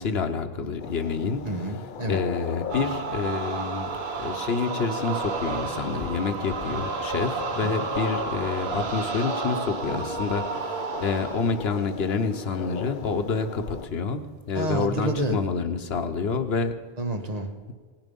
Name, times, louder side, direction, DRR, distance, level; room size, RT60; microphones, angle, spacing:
voice 1, 0.0-1.4 2.1-14.2 14.5-16.7, left 5 dB, 80° left, 8 dB, 1.2 m, -28 dB
sound 1, 0.8-13.9, left 6 dB, 55° left, 0.8 m, -38 dB
voice 2, 1.4-2.2 7.6-7.7 14.5-15.4 17.0-17.5, right 2 dB, 40° right, 4 dB, 1.3 m, -28 dB
sound 2, 2.7-11.6, right 4 dB, 80° right, 1.4 m, -31 dB
18.0 x 10.5 x 5.3 m, 1.5 s
omnidirectional pair, 1.0 m